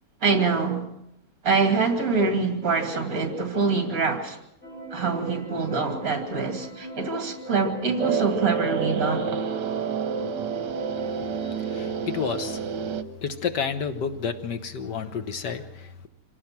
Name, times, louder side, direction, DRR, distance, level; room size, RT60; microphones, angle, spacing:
voice 1, 0.2-0.9 1.4-4.4 4.9-9.3, right 4 dB, 55° right, 3.1 m, -25 dB
sound 1, 4.6-12.3, equal, 40° left, 5.8 m, -40 dB
sound 2, 8.0-13.0, right 6 dB, 80° right, 1.6 m, -29 dB
voice 2, 11.4-12.6 13.2-16.1, left 6 dB, 75° left, 1.8 m, -30 dB
26.0 x 17.5 x 6.0 m
omnidirectional pair, 1.9 m